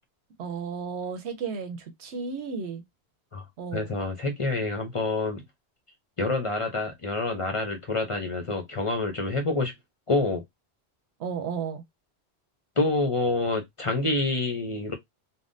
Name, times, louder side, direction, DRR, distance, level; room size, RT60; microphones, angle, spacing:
voice 1, 0.4-2.8 3.6-3.9 11.2-11.8, right 5 dB, 90° right, 1.0 m, -33 dB
voice 2, 3.7-5.4 6.2-9.7 10.1-10.4 12.8-14.9, left 3 dB, 35° left, 0.6 m, -27 dB
3.5 x 2.1 x 2.5 m
omnidirectional pair, 1.1 m